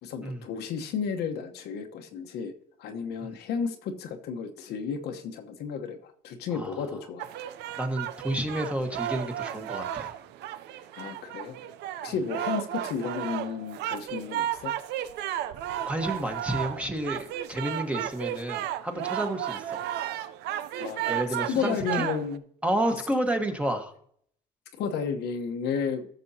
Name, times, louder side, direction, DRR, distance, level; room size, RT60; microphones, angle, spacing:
voice 1, 0.0-2.5 2.8-7.3 10.9-11.6 12.0-14.7 20.8-21.1 21.4-22.4 24.7-26.1, left 6 dB, 75° left, 5 dB, 1.1 m, -32 dB
sound 1, 7.2-22.4, right 11 dB, 85° right, 0.6 m, -34 dB
voice 2, 7.8-10.1 15.3-15.4 15.9-19.8 21.1-22.1 22.6-23.9, right 1 dB, 5° right, 5 dB, 1.4 m, -30 dB
14.0 x 6.8 x 2.8 m, 0.62 s
cardioid pair, 110°, 17 cm